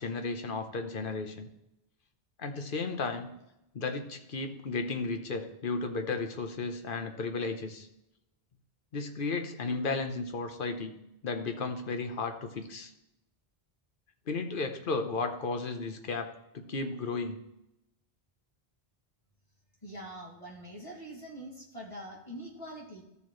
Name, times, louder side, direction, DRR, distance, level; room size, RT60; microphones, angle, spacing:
voice 1, 0.0-1.5 2.4-3.3 3.7-7.9 8.9-10.9 11.2-12.9 14.3-16.3 16.5-17.4, left 3 dB, 60° left, 6 dB, 1.1 m, -34 dB
voice 2, 19.8-23.0, right 1 dB, 35° left, -3 dB, 2.4 m, -44 dB
14.0 x 6.9 x 3.1 m, 0.88 s
omnidirectional pair, 1.0 m